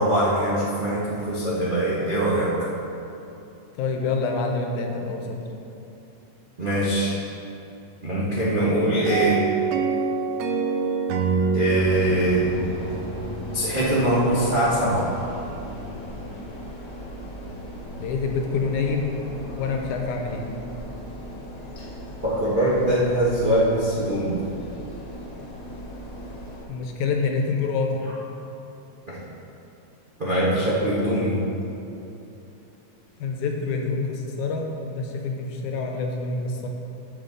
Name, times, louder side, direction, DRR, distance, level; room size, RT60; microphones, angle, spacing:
voice 1, 0.0-2.5 6.6-7.1 8.0-9.4 11.5-12.6 13.5-15.2 22.2-24.4 29.1-29.2 30.2-31.4, right 1 dB, 70° right, -8 dB, 0.4 m, -22 dB
voice 2, 3.7-5.4 18.0-19.2 19.6-20.4 26.7-28.1 33.2-36.7, left 4 dB, 80° left, 2 dB, 2.3 m, -27 dB
sound 1, 9.1-14.2, right 5 dB, 90° right, 1.3 m, -26 dB
sound 2, 11.7-26.6, left 1 dB, 45° left, 1.8 m, -37 dB
14.0 x 5.6 x 4.0 m, 2.9 s
omnidirectional pair, 3.5 m